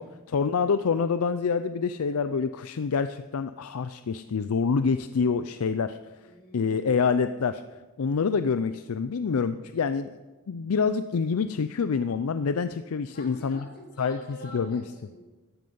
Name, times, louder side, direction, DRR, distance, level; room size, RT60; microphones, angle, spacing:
voice 1, 0.0-6.0 6.5-7.6 8.0-10.2 10.5-13.6 14.0-14.2 14.5-14.8, left 5 dB, 75° left, 11 dB, 0.5 m, -26 dB
voice 2, 6.1-6.7 13.1-15.2, equal, 45° left, -1 dB, 5.2 m, -47 dB
13.5 x 11.5 x 5.5 m, 1.2 s
head